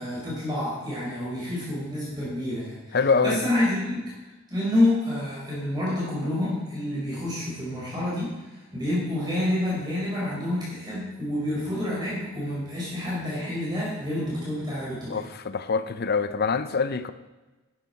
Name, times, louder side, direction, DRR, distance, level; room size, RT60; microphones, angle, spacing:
voice 1, 0.0-3.0 3.2-4.1 4.5-15.2, left 1 dB, 20° right, -7 dB, 4.6 m, -28 dB
voice 2, 2.9-3.5 15.1-17.1, left 5 dB, 50° left, 12 dB, 0.6 m, -25 dB
12.5 x 10.5 x 4.4 m, 1.2 s
head